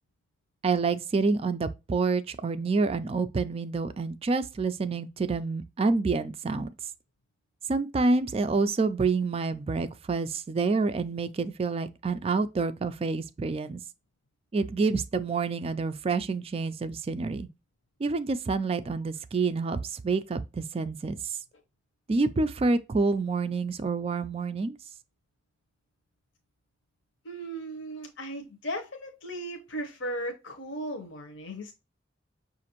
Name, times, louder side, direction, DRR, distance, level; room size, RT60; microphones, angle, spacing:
voice 1, 0.6-6.7 7.7-13.8 14.5-17.5 18.0-21.4 22.1-24.8, right 4 dB, 30° right, 0.3 m, -28 dB
voice 2, 27.2-31.7, right 1 dB, 70° left, 0.8 m, -36 dB
5.8 x 2.5 x 2.9 m
head